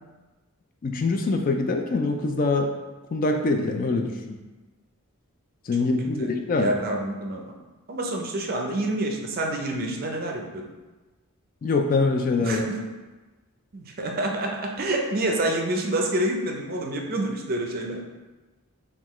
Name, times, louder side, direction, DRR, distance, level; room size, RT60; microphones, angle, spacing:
voice 1, 0.8-2.7 3.1-4.4 5.7-6.7 11.6-12.7, left 3 dB, 40° left, 3 dB, 0.3 m, -24 dB
voice 2, 6.6-7.5 7.9-10.7 12.4-12.9 13.7-18.0, right 1 dB, 45° right, 2 dB, 0.5 m, -28 dB
5.6 x 2.4 x 3.0 m, 1.2 s
head